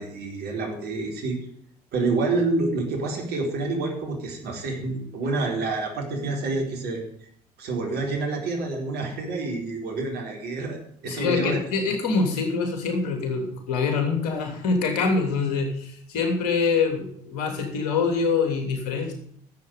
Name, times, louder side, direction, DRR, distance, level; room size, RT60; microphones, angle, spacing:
voice 1, 0.0-1.4 1.9-7.0 7.6-10.8 11.0-11.6, right 3 dB, 55° right, 0 dB, 4.5 m, -28 dB
voice 2, 11.0-19.1, left 4 dB, 70° left, 4 dB, 3.1 m, -25 dB
12.0 x 7.8 x 8.0 m, 0.66 s
figure-of-eight pair, 60°, 20 cm